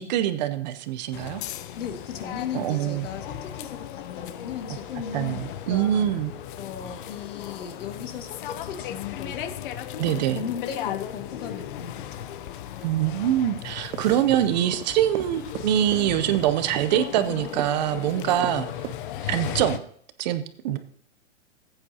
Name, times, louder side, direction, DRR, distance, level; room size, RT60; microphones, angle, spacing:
voice 1, 0.0-1.4 2.5-3.1 5.1-6.3 10.0-10.4 12.8-18.7 19.2-19.8 20.2-20.8, right 11 dB, 35° right, 11 dB, 0.5 m, -24 dB
sound 1, 1.1-19.8, left 11 dB, 45° left, 0.5 m, -36 dB
voice 2, 1.8-6.1 6.6-9.6 10.0-12.3 19.3-19.5, left 7 dB, 80° left, 6 dB, 1.7 m, -37 dB
Run, 13.9-18.6 18.8-19.1 19.4-19.8, right 13 dB, 80° right, 0.5 m, -36 dB
15.5 x 8.9 x 2.8 m, 0.63 s
hypercardioid pair, 145°, 37 cm